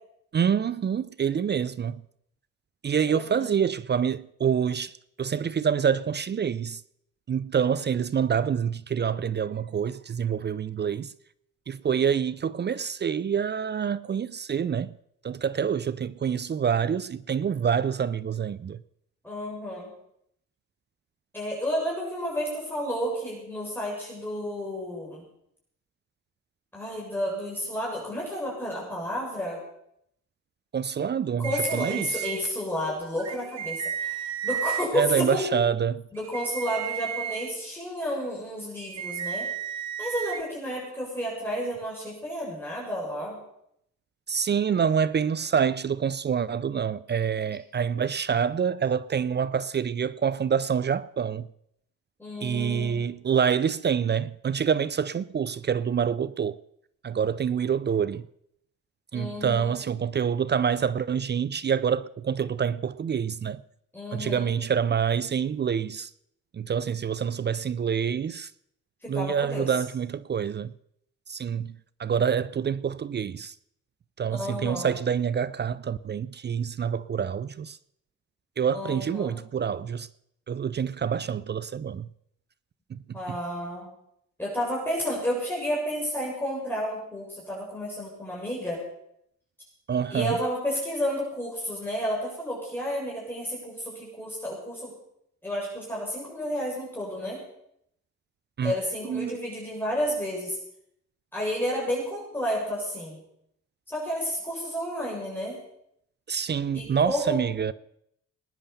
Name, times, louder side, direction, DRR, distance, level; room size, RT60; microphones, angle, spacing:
voice 1, 0.3-2.0 2.8-6.8 7.3-11.1 11.7-14.9 15.2-18.8 30.7-32.3 34.9-36.0 44.3-51.5 52.4-56.6 57.0-58.2 59.1-63.6 64.1-66.1 66.5-68.5 69.1-70.7 71.3-73.5 74.2-77.8 78.6-80.1 80.5-82.1 82.9-83.2 89.9-90.4 98.6-98.8 99.0-99.3 106.3-107.7, right 7 dB, 35° right, 0.6 m, -27 dB
voice 2, 3.1-3.5 19.2-19.9 21.3-25.2 26.7-29.6 31.4-35.4 36.1-39.5 40.0-43.4 52.2-53.1 59.1-59.8 63.9-64.5 69.0-69.7 74.3-75.0 78.7-79.4 83.1-83.9 84.4-88.8 90.1-94.9 95.4-97.4 98.6-100.6 101.3-103.2 103.9-105.6 106.7-107.4, equal, 5° left, 7.5 m, -31 dB
sound 1, 31.4-32.4 33.2-34.9 36.2-37.5 38.8-40.4, right 8 dB, 60° right, 2.0 m, -33 dB
19.5 x 10.0 x 7.0 m
cardioid pair, 90°, 30 cm